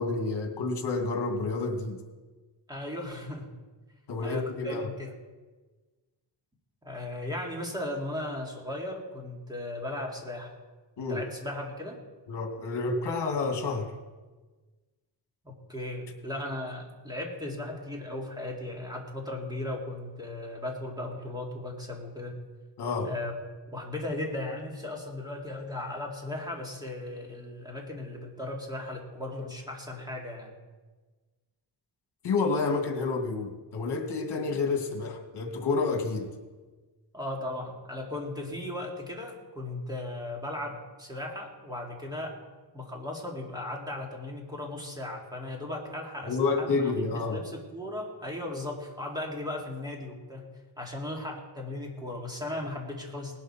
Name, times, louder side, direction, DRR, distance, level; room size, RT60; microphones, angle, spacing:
voice 1, 0.0-2.0 4.1-4.9 11.0-11.2 12.3-13.9 22.8-23.1 32.2-36.3 46.2-47.4, left 3 dB, 65° left, 3 dB, 2.1 m, -29 dB
voice 2, 2.7-3.5 4.2-5.1 6.8-10.5 11.0-12.0 15.4-22.4 23.0-23.3 23.7-30.5 37.1-42.4 42.7-50.5 50.8-53.4, left 1 dB, 10° right, -1 dB, 2.3 m, -37 dB
18.5 x 11.5 x 4.4 m, 1.3 s
wide cardioid pair, 170°, 44 cm